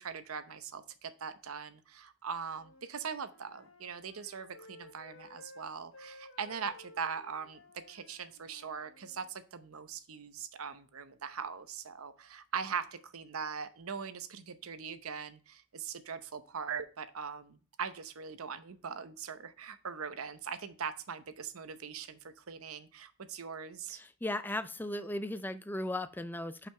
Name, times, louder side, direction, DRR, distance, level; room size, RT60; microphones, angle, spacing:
voice 1, 0.0-24.0, right 6 dB, 80° right, 11 dB, 0.8 m, -41 dB
Wind instrument woodwind instrument, 2.5-9.3, left 2 dB, 70° left, 1.1 m, -56 dB
voice 2, 23.9-26.7, left 1 dB, 10° left, 12 dB, 0.4 m, -37 dB
5.8 x 5.6 x 4.3 m, 0.38 s
head